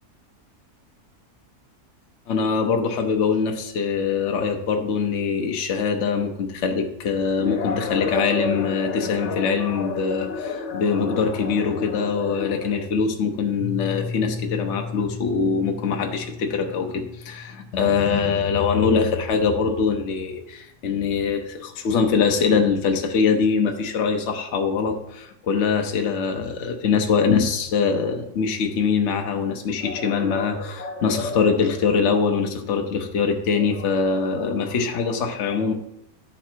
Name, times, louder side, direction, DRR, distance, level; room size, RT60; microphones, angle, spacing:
voice 1, 2.3-35.7, left 5 dB, 55° left, 3 dB, 1.0 m, -23 dB
Piano, 13.6-19.2, left 5 dB, 25° right, 2.1 m, -36 dB
10.5 x 4.2 x 4.5 m, 0.80 s
omnidirectional pair, 1.6 m